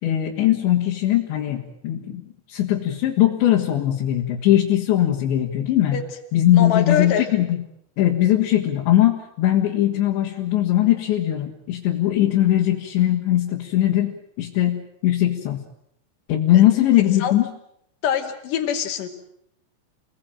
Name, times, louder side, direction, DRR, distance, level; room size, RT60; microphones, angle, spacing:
voice 1, 0.0-6.0 6.3-7.6 8.0-15.6 16.3-17.4, left 13 dB, 80° left, 0 dB, 4.1 m, -20 dB
voice 2, 6.5-7.3 17.2-17.3 18.0-19.1, left 8 dB, 50° left, 4 dB, 3.7 m, -24 dB
30.0 x 19.0 x 8.9 m, 0.76 s
omnidirectional pair, 5.1 m